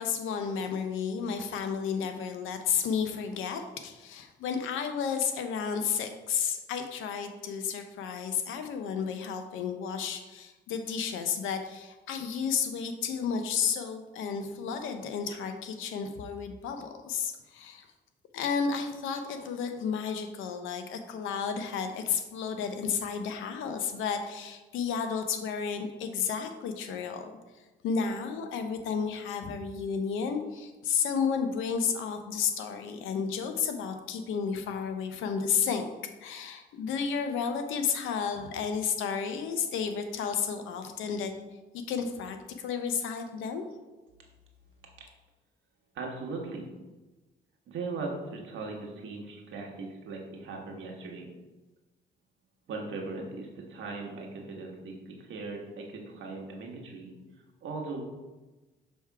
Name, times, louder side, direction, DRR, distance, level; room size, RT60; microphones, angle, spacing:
voice 1, 0.0-17.9 18.3-27.2 27.8-35.8 36.2-41.3 41.9-43.6, left 6 dB, 90° left, 6 dB, 0.7 m, -32 dB
voice 2, 45.9-46.7 47.7-51.3 52.7-57.1 57.6-58.0, right 3 dB, 75° right, 0 dB, 1.4 m, -39 dB
6.3 x 3.5 x 4.6 m, 1.2 s
cardioid pair, 90°, 20 cm